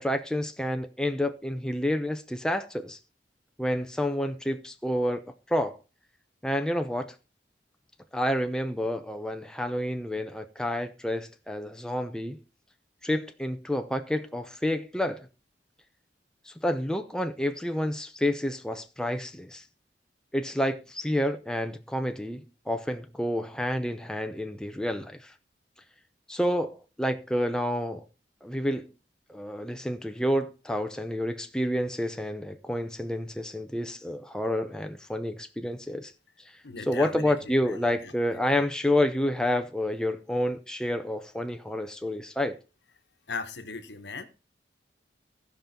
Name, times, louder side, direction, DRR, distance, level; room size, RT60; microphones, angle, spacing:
voice 1, 0.0-3.0 3.6-5.8 6.4-7.1 8.1-12.4 13.0-15.3 16.5-19.6 20.3-25.3 26.3-28.0 28.4-28.9 29.3-36.1 36.9-42.6, left 1 dB, 5° left, 0.6 m, -29 dB
voice 2, 36.6-38.4 43.3-44.2, left 4 dB, 75° left, 1.2 m, -38 dB
15.5 x 5.4 x 4.3 m
head